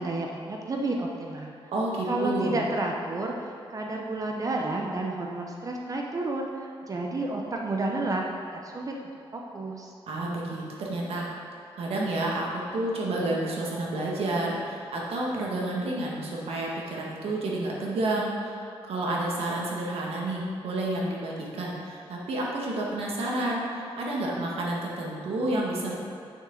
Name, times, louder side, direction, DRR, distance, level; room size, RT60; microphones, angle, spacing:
voice 1, 0.0-1.5 2.1-8.2 8.5-9.9, right 2 dB, 35° right, 0 dB, 0.8 m, -31 dB
voice 2, 1.7-2.6 10.1-11.3 11.8-26.0, right 2 dB, 85° right, -3 dB, 1.7 m, -30 dB
9.6 x 6.4 x 3.9 m, 2.5 s
cardioid pair, 110°, 10 cm